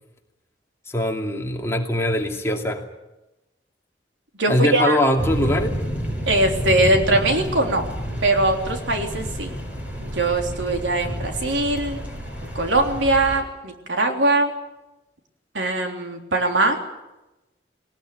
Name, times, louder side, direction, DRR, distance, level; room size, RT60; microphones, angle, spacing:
voice 1, 0.9-2.8 4.5-5.7, left 1 dB, 15° left, 1 dB, 2.5 m, -22 dB
voice 2, 4.4-5.0 6.3-7.9 8.2-9.5 10.1-12.0 12.6-14.5 15.5-16.8, right 2 dB, 90° right, 3 dB, 3.5 m, -21 dB
sound 1, 5.2-13.4, equal, 10° right, 7.1 m, -29 dB
19.5 x 19.5 x 9.4 m, 1.0 s
head